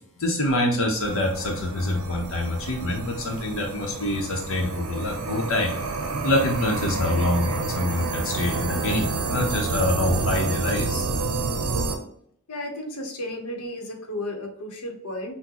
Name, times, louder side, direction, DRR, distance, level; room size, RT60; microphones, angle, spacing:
voice 1, 0.2-5.7 6.2-11.0, left 1 dB, 65° left, 0 dB, 0.8 m, -25 dB
sound 1, 1.0-12.0, right 4 dB, 80° right, 0.6 m, -29 dB
voice 2, 12.5-15.4, left 1 dB, 90° left, 2 dB, 0.9 m, -33 dB
6.0 x 2.1 x 2.9 m, 0.69 s
head